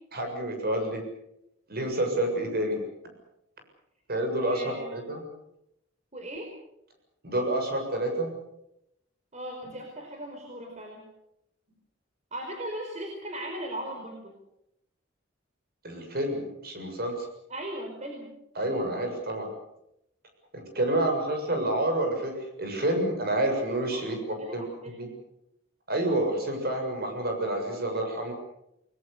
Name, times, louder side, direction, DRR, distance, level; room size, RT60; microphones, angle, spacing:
voice 1, 0.1-1.0 1.7-2.8 4.1-5.2 7.2-8.3 15.8-17.3 18.6-19.5 20.5-24.2 24.5-24.6 25.0-25.1 25.9-28.3, right 1 dB, 50° right, 4 dB, 7.2 m, -28 dB
voice 2, 4.5-5.1 6.1-6.5 9.3-11.0 12.3-14.3 17.5-18.3 23.9-25.1, right 1 dB, 35° right, 1 dB, 4.7 m, -38 dB
29.5 x 21.0 x 6.8 m, 0.82 s
head